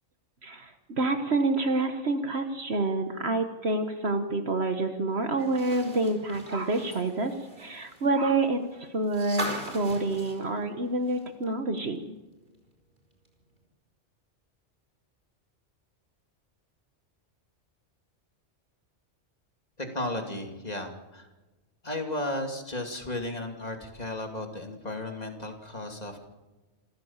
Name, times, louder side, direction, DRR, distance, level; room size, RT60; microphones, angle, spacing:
voice 1, 0.4-12.0, right 2 dB, 60° right, 7 dB, 1.6 m, -28 dB
sound 1, 5.4-11.4 11.8-11.9 13.3-13.4, right 1 dB, 40° right, 4.4 m, -40 dB
voice 2, 19.8-21.3 21.8-26.2, left 1 dB, 35° left, 3 dB, 2.8 m, -34 dB
27.0 x 15.0 x 7.3 m, 1.1 s
omnidirectional pair, 1.2 m